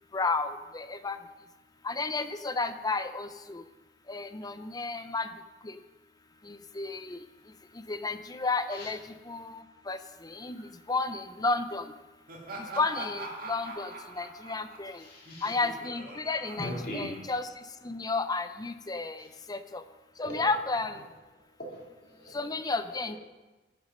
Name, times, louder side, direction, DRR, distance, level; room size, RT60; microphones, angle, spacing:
voice 1, 0.1-1.2 1.8-3.6 4.1-5.3 5.6-5.7 6.5-7.2 7.9-9.0 9.3-10.6 10.9-11.9 12.8-15.0 15.4-17.5 17.8-19.8 20.2-21.0 22.3-23.2, left 3 dB, 20° left, 10 dB, 0.6 m, -32 dB
Laughter, 12.3-17.7, right 2 dB, 55° right, 2.1 m, -43 dB
voice 2, 14.9-15.5 16.6-17.2 19.2-19.3 20.2-20.5 21.6-22.4, equal, 55° left, -3 dB, 3.2 m, -40 dB
14.0 x 6.5 x 5.4 m, 1.2 s
head